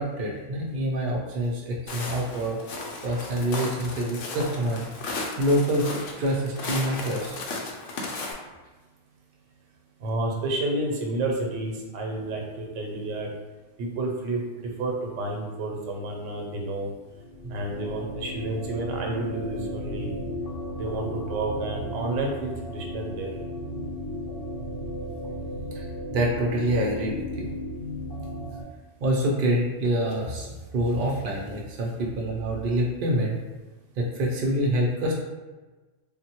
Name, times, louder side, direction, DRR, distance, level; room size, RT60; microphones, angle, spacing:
voice 1, 0.0-2.6 3.0-5.9 6.2-7.4 17.4-17.5 25.7-25.9 26.1-27.5 29.0-33.4 34.0-35.1, right 1 dB, 60° right, -3 dB, 0.6 m, -26 dB
Walk footsteps, 1.9-8.3, left 3 dB, 85° left, 0.9 m, -35 dB
voice 2, 10.0-13.3 13.8-16.9 17.5-20.1 20.8-23.3, right 2 dB, 85° right, 0 dB, 1.0 m, -30 dB
sound 1, 17.1-28.6, equal, 60° left, 0.7 m, -35 dB
3.5 x 2.2 x 2.9 m, 1.2 s
omnidirectional pair, 1.2 m